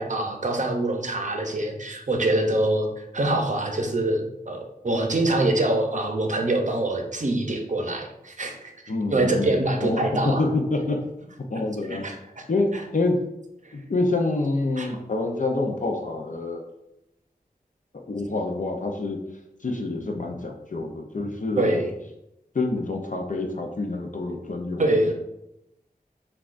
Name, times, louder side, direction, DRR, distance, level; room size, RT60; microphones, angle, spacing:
voice 1, 0.0-2.9 3.1-8.7 9.1-10.4 12.0-12.4 12.7-12.8 13.6-13.7 14.8-14.9 21.5-21.9 24.8-25.1, right 2 dB, 50° right, 3 dB, 0.6 m, -24 dB
voice 2, 8.9-9.5 9.8-10.0 10.2-11.0 11.5-12.1 12.5-13.2 13.7-16.7 18.1-19.2 19.6-21.8 22.5-25.1, left 2 dB, 55° left, 2 dB, 0.5 m, -27 dB
5.9 x 2.3 x 2.5 m, 0.86 s
wide cardioid pair, 60°, 16 cm